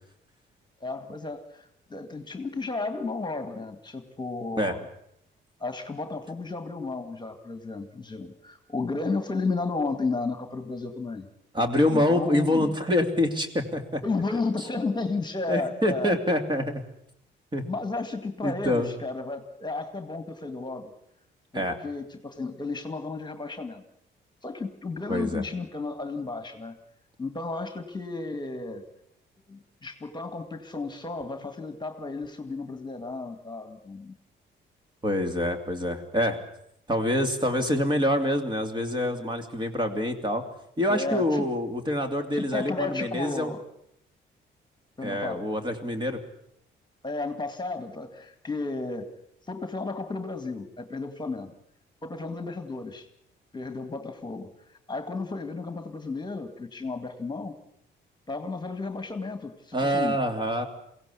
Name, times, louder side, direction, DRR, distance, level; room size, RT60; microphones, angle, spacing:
voice 1, 0.8-4.8 5.6-11.3 11.9-12.8 14.0-16.2 17.6-20.9 21.5-23.8 24.4-26.8 27.2-28.8 29.5-34.1 40.9-41.5 42.3-43.7 45.0-45.5 47.0-49.1 49.5-51.5 52.0-53.1 53.5-57.6 58.3-60.2, left 3 dB, 20° left, 8 dB, 2.1 m, -33 dB
voice 2, 11.5-14.0 15.5-16.8 17.5-17.6 18.4-18.9 21.5-21.7 25.1-25.4 35.0-36.4 36.9-40.4 40.8-43.5 45.0-46.2 59.7-60.7, left 1 dB, 25° right, 6 dB, 2.9 m, -26 dB
22.5 x 17.0 x 8.4 m, 0.73 s
cardioid pair, 90°, 20 cm